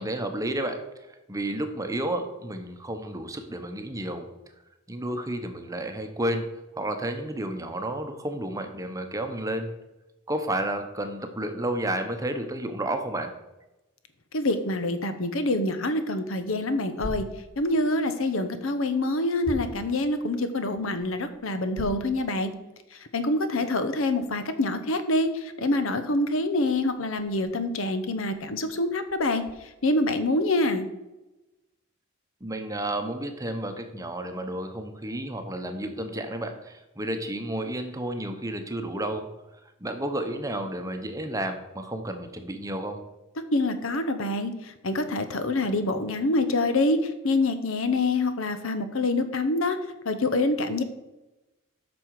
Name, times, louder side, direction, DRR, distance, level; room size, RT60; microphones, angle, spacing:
voice 1, 0.0-4.3 4.9-6.5 6.8-9.7 10.3-13.3 32.4-39.3 39.8-43.0, right 1 dB, 15° right, 6 dB, 0.8 m, -31 dB
voice 2, 14.3-17.2 17.6-22.5 22.9-29.4 29.8-30.9 43.5-49.8 50.0-50.8, left 2 dB, 70° left, 10 dB, 0.9 m, -26 dB
sound 1, 16.9-18.0 18.6-20.1 20.6-22.2 22.6-22.7 23.3-23.4 24.1-30.3, equal, 10° left, 1.6 m, -43 dB
8.7 x 6.1 x 4.7 m, 1.0 s
head